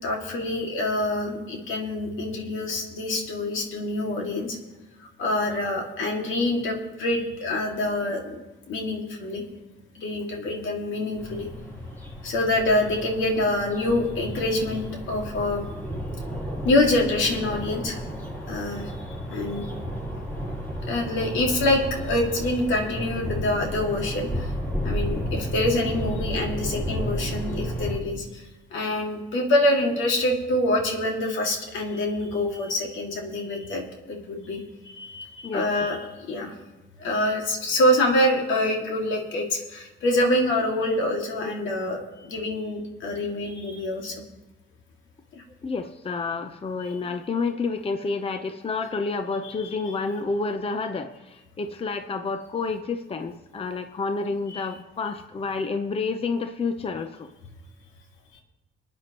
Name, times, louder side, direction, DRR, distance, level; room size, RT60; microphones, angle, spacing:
voice 1, 0.0-4.6 5.0-8.4 8.7-9.4 9.9-11.5 12.2-15.6 16.6-18.0 18.5-19.7 20.9-24.5 24.8-28.4 28.7-36.5 37.0-44.2 45.3-45.4 49.6-49.7 54.5-54.7 58.3-58.4, left 1 dB, 75° left, 1 dB, 2.2 m, -26 dB
sound 1, 11.2-28.0, equal, 10° left, 4.0 m, -32 dB
voice 2, 45.6-57.3, left 4 dB, 30° left, 7 dB, 0.7 m, -29 dB
26.0 x 9.3 x 3.0 m, 1.1 s
cardioid pair, 90°, 20 cm